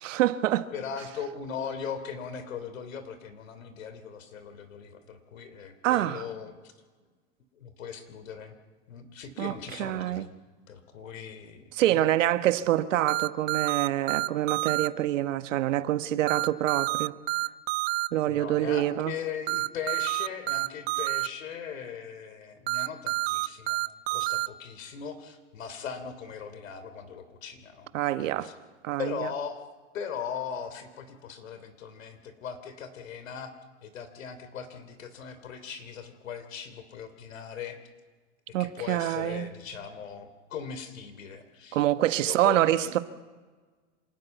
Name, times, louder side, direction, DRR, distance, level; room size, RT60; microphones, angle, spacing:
voice 1, 0.0-0.7 5.8-6.2 9.4-10.3 11.7-17.1 18.1-19.2 27.9-28.5 28.8-29.3 38.5-39.5 41.7-43.0, right 13 dB, 75° right, 1.3 m, -26 dB
voice 2, 0.7-6.7 7.5-8.5 8.9-10.3 10.7-12.1 18.2-23.8 24.1-27.9 28.2-28.5 29.0-29.6 29.9-33.5 33.8-37.8 38.6-41.8 42.2-43.0, left 7 dB, 85° left, 3.1 m, -39 dB
sound 1, 13.1-14.9 16.3-18.1 19.5-21.3 22.7-24.5, right 23 dB, 50° right, 0.5 m, -28 dB
26.5 x 13.0 x 9.2 m
hypercardioid pair, 130°, 38 cm